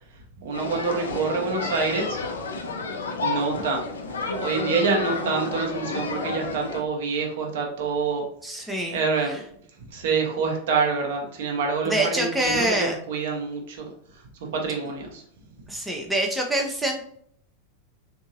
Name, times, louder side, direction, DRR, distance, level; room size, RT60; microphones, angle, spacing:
voice 1, 0.1-2.2 3.2-8.3 8.6-9.4 9.8-14.2 14.5-15.2, right 4 dB, 55° right, 1 dB, 0.8 m, -27 dB
sound 1, 0.5-6.8, left 3 dB, 65° left, 0.5 m, -30 dB
voice 2, 8.4-9.0 11.9-12.9 15.7-17.0, right 1 dB, 5° right, 1 dB, 0.5 m, -25 dB
3.6 x 2.6 x 2.7 m, 0.65 s
figure-of-eight pair, 90°, 0 cm